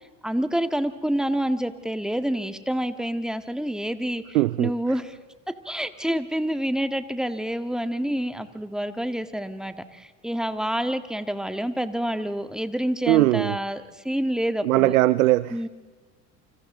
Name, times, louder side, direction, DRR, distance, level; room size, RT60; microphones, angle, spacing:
voice 1, 0.2-5.2 5.7-15.0 15.5-15.7, equal, ahead, 1.8 m, -28 dB
voice 2, 4.3-4.7 13.1-13.6 14.6-15.6, right 16 dB, 85° right, 0.6 m, -20 dB
29.0 x 26.0 x 3.8 m
hypercardioid pair, 70°, 40 cm